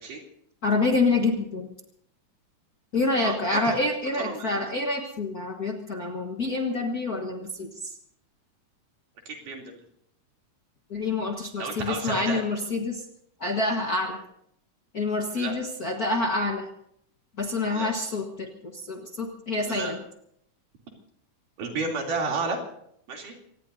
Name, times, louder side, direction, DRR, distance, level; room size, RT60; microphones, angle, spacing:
voice 1, 0.6-1.7 2.9-8.0 10.9-13.0 13.4-14.2 14.9-16.7 17.4-20.0, left 2 dB, 40° left, 2 dB, 1.3 m, -27 dB
voice 2, 3.2-3.6 4.2-4.6 9.3-9.8 11.6-12.4 15.4-15.6 17.7-17.9 19.6-19.9 21.6-22.6 23.1-23.3, right 3 dB, 80° right, 1 dB, 4.8 m, -31 dB
25.5 x 19.0 x 2.7 m, 0.70 s
omnidirectional pair, 3.6 m